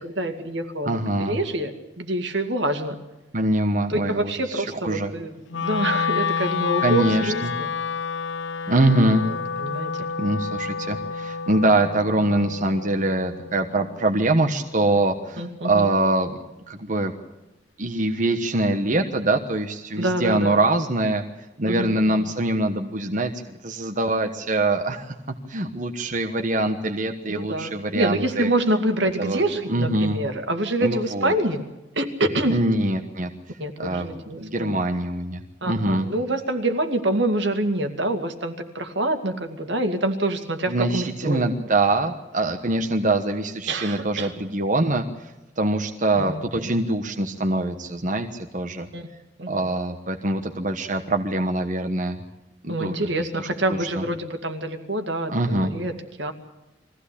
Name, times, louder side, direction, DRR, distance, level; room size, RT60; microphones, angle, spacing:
voice 1, 0.0-3.0 3.9-7.7 9.2-9.9 15.4-15.9 20.0-20.6 21.7-21.9 27.3-31.6 31.9-32.6 33.6-34.8 35.6-41.6 43.7-44.3 46.1-46.8 48.9-49.1 49.4-49.7 52.7-56.3, right 1 dB, 75° right, 6 dB, 2.3 m, -26 dB
voice 2, 0.9-1.4 3.3-5.1 6.8-7.5 8.7-9.3 10.2-16.3 16.7-17.1 17.8-21.2 21.6-25.2 25.5-28.5 29.2-29.4 29.7-30.2 30.8-31.3 32.5-33.3 33.8-34.1 34.4-36.1 40.7-45.3 45.6-48.9 49.5-52.2 52.6-53.0 53.7-54.0 55.3-55.7, right 2 dB, 45° right, 5 dB, 1.3 m, -23 dB
Wind instrument woodwind instrument, 5.5-15.7, left 5 dB, 85° left, 0.6 m, -30 dB
22.5 x 16.0 x 8.5 m, 1.0 s
head